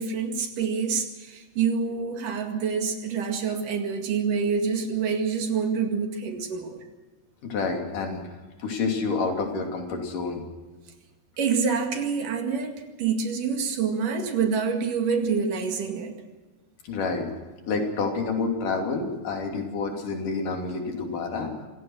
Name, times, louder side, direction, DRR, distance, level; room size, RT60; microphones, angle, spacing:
voice 1, 0.0-6.8 11.4-16.2, right 6 dB, 70° right, 4 dB, 3.7 m, -27 dB
voice 2, 7.4-8.2 8.6-10.4 16.8-17.3 17.7-21.7, left 4 dB, 70° left, 2 dB, 4.3 m, -28 dB
26.5 x 16.5 x 6.3 m, 1.3 s
omnidirectional pair, 3.9 m